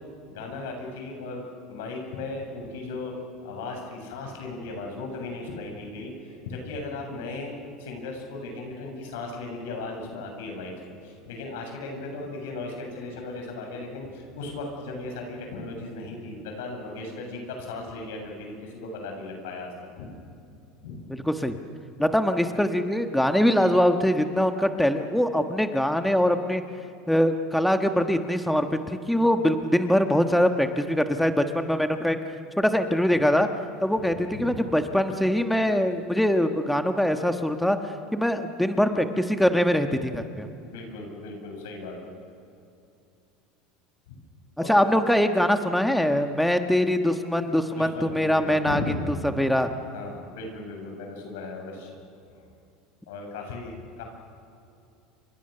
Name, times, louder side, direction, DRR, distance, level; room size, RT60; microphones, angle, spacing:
voice 1, 0.3-10.7 11.0-19.7 20.0-20.1 20.8-21.0 33.9-34.7 40.6-42.1 44.1-44.2 44.6-44.9 47.7-49.0 49.9-51.9 53.1-54.0, left 3 dB, 85° left, 2 dB, 7.9 m, -36 dB
voice 2, 21.1-21.6 22.0-26.6 27.1-32.2 32.6-33.5 33.8-37.8 38.1-40.5 44.7-48.8 49.4-49.7, equal, ahead, 6 dB, 1.3 m, -23 dB
29.5 x 26.0 x 6.8 m, 2.6 s
supercardioid pair, 125°, 0 cm